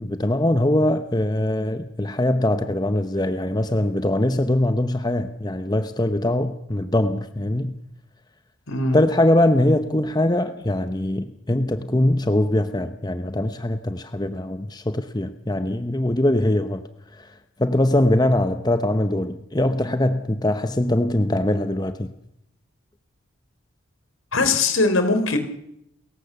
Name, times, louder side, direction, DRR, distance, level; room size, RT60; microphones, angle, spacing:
voice 1, 0.0-7.7 8.9-16.8 17.1-17.3 17.6-22.1, left 1 dB, 20° left, 9 dB, 0.8 m, -22 dB
voice 2, 8.7-9.0 24.3-25.4, left 3 dB, 85° left, 8 dB, 4.0 m, -20 dB
29.5 x 15.0 x 6.9 m, 0.78 s
head